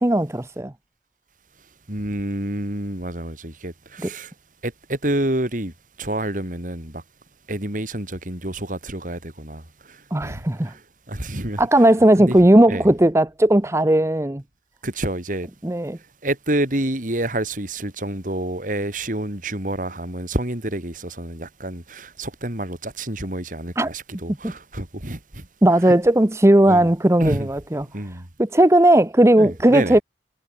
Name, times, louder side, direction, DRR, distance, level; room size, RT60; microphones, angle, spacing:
voice 1, 0.0-0.7 4.0-4.1 10.1-10.7 11.6-14.4 15.6-16.0 23.8-23.9 24.4-24.5 25.6-27.9 28.4-30.0, right 1 dB, 15° right, 0.8 m, -16 dB
voice 2, 1.9-4.3 4.6-5.7 6.0-7.0 7.5-9.6 10.2-10.4 11.1-11.6 12.3-12.4 12.7-12.8 14.8-15.5 16.2-25.4 25.9-26.0 26.7-26.9 27.2-27.5 27.9-28.2 29.4-30.0, right 1 dB, 50° right, 3.7 m, -28 dB
head